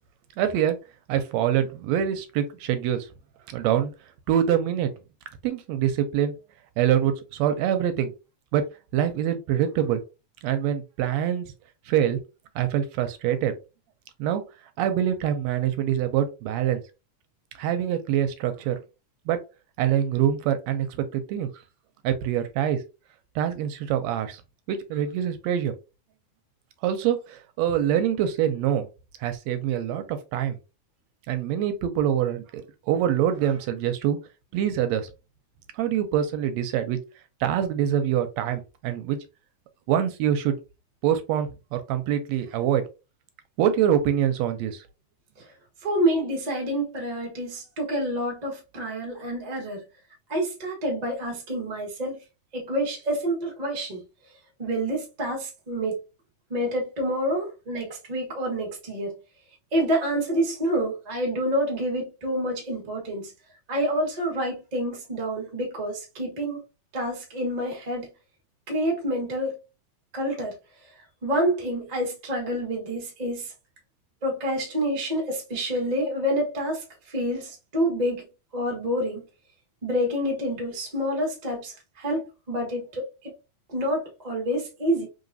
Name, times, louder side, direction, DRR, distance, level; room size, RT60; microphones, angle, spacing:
voice 1, 0.4-0.8 1.1-3.1 3.5-3.9 4.3-4.9 5.4-6.3 6.8-8.1 8.5-8.6 8.9-10.0 10.4-11.5 11.9-12.2 12.5-13.5 14.2-14.4 14.8-16.8 17.5-18.8 19.3-19.4 19.8-21.5 22.0-22.8 23.3-24.4 24.7-25.7 26.8-28.9 29.2-30.6 31.3-34.2 34.5-35.1 35.8-37.0 37.4-39.2 39.9-40.6 41.0-42.8 43.6-44.8, right 10 dB, 80° right, 1.7 m, -25 dB
voice 2, 45.8-49.8 50.3-52.2 52.5-54.0 54.6-56.0 56.5-59.1 59.7-63.3 63.7-66.6 66.9-68.1 68.7-69.5 70.1-70.5 71.2-73.5 74.2-76.8 77.1-78.3 78.5-79.2 79.8-82.2 82.5-83.0 83.7-85.1, equal, 65° right, 0.4 m, -27 dB
3.9 x 3.5 x 2.6 m
omnidirectional pair, 3.3 m